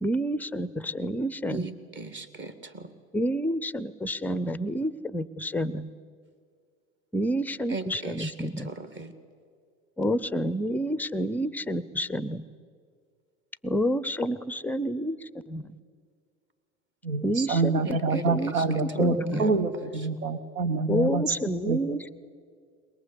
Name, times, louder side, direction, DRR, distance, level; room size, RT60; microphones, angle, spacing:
voice 1, 0.0-1.7 3.1-5.9 7.1-8.7 10.0-12.4 13.6-15.6 17.2-17.8 18.1-19.5 20.9-22.1, equal, 5° left, 16 dB, 0.5 m, -29 dB
voice 2, 1.5-2.9 7.7-9.1 17.8-19.6 19.9-20.1, right 3 dB, 25° right, 7 dB, 2.0 m, -38 dB
voice 3, 17.0-21.2 21.7-21.8, right 4 dB, 75° right, 12 dB, 1.4 m, -26 dB
22.0 x 21.0 x 8.3 m, 2.1 s
figure-of-eight pair, 75°, 42 cm